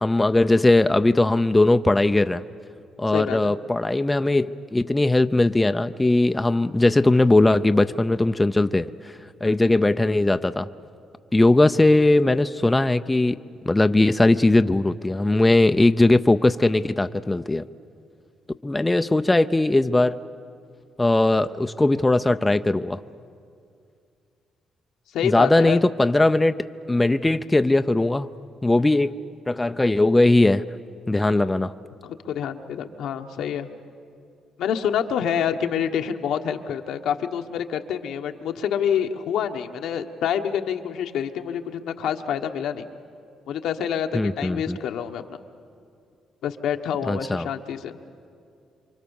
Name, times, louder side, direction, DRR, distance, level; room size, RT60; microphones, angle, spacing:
voice 1, 0.0-2.4 3.0-10.7 11.3-13.4 13.7-17.7 18.6-20.2 21.0-23.0 25.2-28.3 28.6-29.1 29.5-30.6 31.1-31.7 44.1-44.8 47.0-47.5, left 2 dB, 15° left, 10 dB, 0.5 m, -19 dB
voice 2, 3.1-3.5 9.4-9.6 25.1-25.8 28.7-28.8 32.0-33.7 34.6-42.8 43.5-45.4 46.4-48.0, left 8 dB, 80° left, 5 dB, 1.2 m, -27 dB
27.0 x 24.5 x 7.1 m, 2.4 s
cardioid pair, 90°, 0 cm